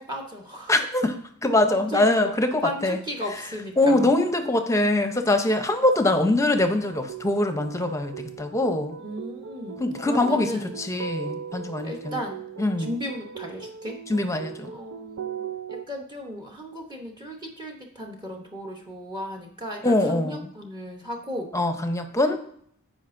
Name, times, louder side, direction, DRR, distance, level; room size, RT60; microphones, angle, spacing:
voice 1, 0.0-0.7 1.7-2.3 2.6-4.1 9.0-10.7 11.8-12.4 12.8-13.9 14.7-15.4 15.9-21.5, equal, 20° right, 1 dB, 1.0 m, -35 dB
voice 2, 0.7-3.0 3.8-8.9 9.8-12.2 12.6-12.9 14.1-14.7 19.8-20.5 21.5-22.4, left 2 dB, 15° left, 7 dB, 0.7 m, -23 dB
sound 1, 6.8-15.8, right 6 dB, 90° right, 0.6 m, -38 dB
14.5 x 5.0 x 2.6 m, 0.66 s
head